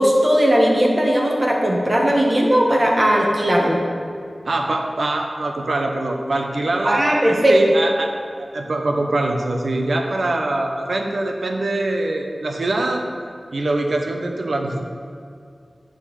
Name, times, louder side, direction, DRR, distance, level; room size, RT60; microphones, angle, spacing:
voice 1, 0.0-3.8 6.8-7.5, equal, 30° right, -2 dB, 1.6 m, -17 dB
voice 2, 4.4-8.1 8.4-13.1 13.5-14.8, right 2 dB, 80° right, 3 dB, 0.9 m, -23 dB
10.0 x 4.1 x 6.4 m, 2.4 s
wide cardioid pair, 70°, 0 cm